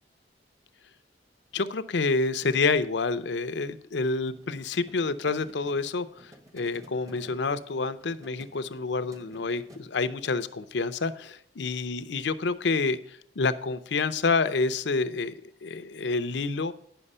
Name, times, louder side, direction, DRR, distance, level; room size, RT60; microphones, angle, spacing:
voice 1, 1.5-16.7, left 4 dB, 70° left, 12 dB, 0.6 m, -28 dB
sound 1, 4.3-9.8, equal, 20° right, 1.0 m, -53 dB
9.9 x 5.8 x 5.4 m, 0.66 s
head